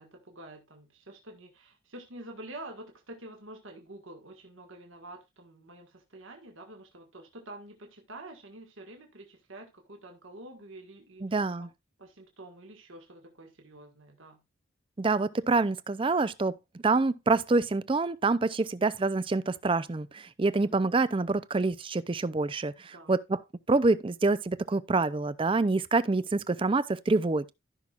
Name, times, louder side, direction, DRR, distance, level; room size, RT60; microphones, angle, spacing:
voice 1, 0.0-11.7 12.0-14.4 20.5-20.8 22.9-23.2, right 1 dB, 75° right, 1.8 m, -48 dB
voice 2, 11.2-11.7 15.0-16.6 16.8-23.4 23.7-27.5, right 3 dB, 25° right, 0.4 m, -26 dB
14.5 x 5.9 x 2.4 m
head